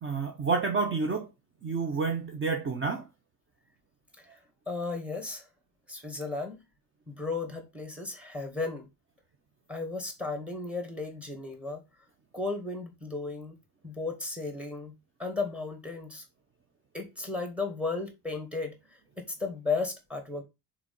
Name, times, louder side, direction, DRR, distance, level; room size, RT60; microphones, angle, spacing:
voice 1, 0.0-1.3 1.6-3.1, right 4 dB, 30° right, 0.9 m, -29 dB
voice 2, 4.7-5.5 5.9-6.6 7.1-8.9 9.7-11.8 12.3-13.6 13.8-14.9 15.2-16.2 16.9-20.4, left 3 dB, 5° right, 1.9 m, -35 dB
4.9 x 4.3 x 5.4 m
cardioid pair, 120°, 40 cm